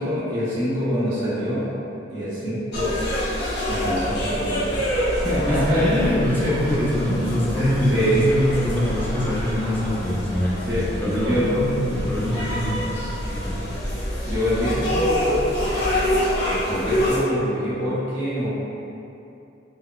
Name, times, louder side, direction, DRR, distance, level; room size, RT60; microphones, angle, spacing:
voice 1, 0.0-1.7 2.1-2.9 3.7-4.8 5.2-6.1 6.4-6.8 7.5-8.3 10.6-10.8 11.1-11.6 14.2-16.0 16.4-18.5, equal, 85° right, -10 dB, 1.1 m, -25 dB
sound 1, 2.7-17.2, equal, 65° left, 0.8 m, -27 dB
sound 2, 3.5-9.9, equal, 25° left, 1.1 m, -41 dB
voice 2, 5.4-13.7, left 1 dB, 10° left, -8 dB, 0.5 m, -24 dB
3.7 x 2.3 x 2.3 m, 2.8 s
head